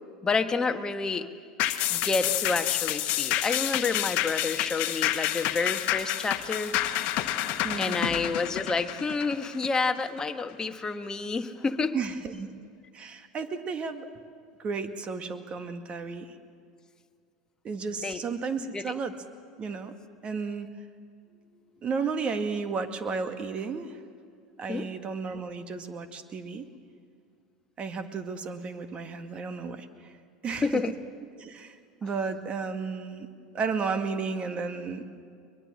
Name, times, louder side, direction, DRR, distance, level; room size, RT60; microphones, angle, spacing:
voice 1, 0.2-1.3 1.9-6.7 7.8-11.9 18.0-18.2 18.7-18.8 24.7-24.9 30.6-30.9, left 4 dB, 20° left, 7 dB, 1.4 m, -29 dB
sound 1, 1.6-10.3 10.7-10.8, left 14 dB, 55° left, 1.1 m, -29 dB
voice 2, 7.6-8.2 11.9-12.5 12.9-14.1 14.6-16.4 17.6-19.1 19.6-19.9 20.2-20.7 21.8-24.0 24.6-26.7 27.8-30.1 30.4-30.8 31.4-33.3 33.5-35.0, right 5 dB, 35° right, 8 dB, 1.9 m, -33 dB
23.0 x 21.0 x 7.6 m, 2.2 s
hypercardioid pair, 85°, 3 cm